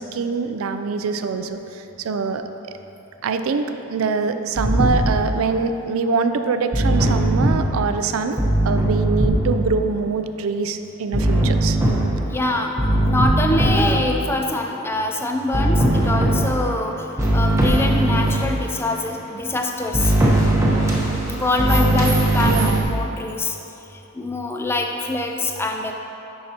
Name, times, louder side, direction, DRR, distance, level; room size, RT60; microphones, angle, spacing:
voice 1, 0.0-2.4 3.2-8.4 8.6-11.8 22.4-22.9, right 4 dB, 80° right, 8 dB, 0.4 m, -24 dB
sound 1, 4.6-5.2 6.7-7.7 8.4-9.6 11.1-12.4 12.8-14.1 15.5-16.7 17.2-18.5 19.9-22.8, right 1 dB, 15° right, 0.9 m, -19 dB
voice 2, 12.2-12.7 13.1-17.1 17.3-20.1 21.3-22.5 22.8-23.6 23.9-25.9, left 2 dB, 10° left, 3 dB, 0.3 m, -24 dB
9.5 x 5.5 x 2.9 m, 2.9 s
head